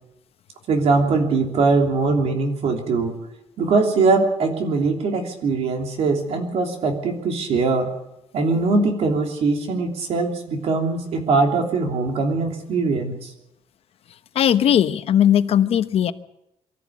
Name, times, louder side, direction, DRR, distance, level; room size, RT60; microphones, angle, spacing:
voice 1, 0.7-3.2 3.6-7.9 8.3-13.3, right 3 dB, 65° right, 4 dB, 3.1 m, -21 dB
voice 2, 14.3-16.1, left 10 dB, 60° left, 12 dB, 0.9 m, -18 dB
23.0 x 13.5 x 8.4 m, 0.87 s
cardioid pair, 175°, 11 cm